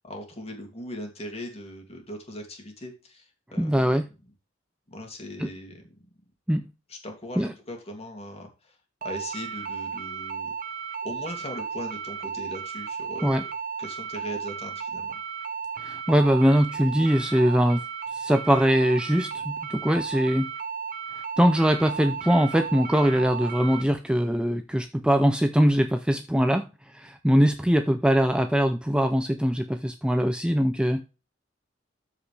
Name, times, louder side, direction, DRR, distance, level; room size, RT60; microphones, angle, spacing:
voice 1, 0.0-3.9 4.9-6.0 6.9-10.5 11.0-13.4 13.8-15.2, equal, 35° left, 2 dB, 2.6 m, -39 dB
voice 2, 3.6-4.0 5.4-5.5 6.5-6.6 7.4-7.5 13.2-13.4 15.8-17.8 18.1-20.5 21.4-31.1, equal, 5° right, 7 dB, 0.5 m, -22 dB
sound 1, 9.0-23.8, right 6 dB, 45° right, 0.9 m, -34 dB
13.0 x 5.0 x 3.4 m, 0.30 s
head